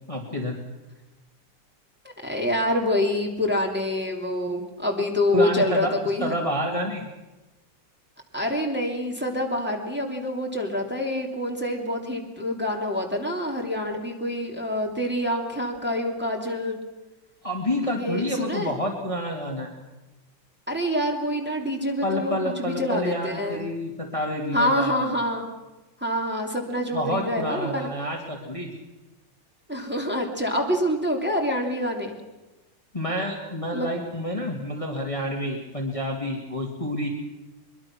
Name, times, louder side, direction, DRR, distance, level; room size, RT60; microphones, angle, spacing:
voice 1, 0.1-0.6 5.3-5.9 6.2-7.0 17.4-19.7 22.0-24.9 26.8-28.7 32.9-37.1, equal, 20° left, 0 dB, 2.4 m, -28 dB
voice 2, 2.2-6.3 8.3-16.8 17.9-18.7 20.7-23.7 24.5-25.5 26.0-27.9 29.7-32.2 33.7-33.9, left 1 dB, 5° right, 0 dB, 3.0 m, -26 dB
23.0 x 23.0 x 6.2 m, 1.1 s
omnidirectional pair, 2.0 m